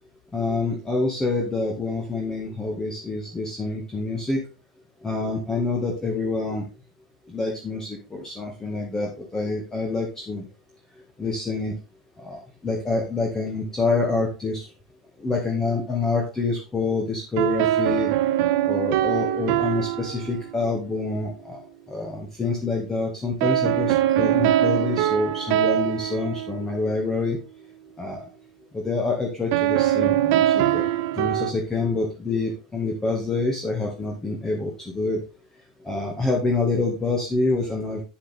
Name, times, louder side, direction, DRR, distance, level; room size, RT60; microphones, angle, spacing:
voice 1, 0.3-4.4 5.0-6.6 7.3-10.5 11.2-11.7 12.2-14.7 15.2-18.1 18.6-21.6 21.9-27.4 28.0-28.3 28.7-30.9 31.2-35.2 35.8-38.0, left 3 dB, 15° left, 0 dB, 1.9 m, -27 dB
sound 1, 17.4-20.7 23.4-27.3 29.5-31.5, right 12 dB, 50° right, 0.7 m, -22 dB
8.6 x 8.0 x 3.5 m, 0.32 s
figure-of-eight pair, 85°, 3 cm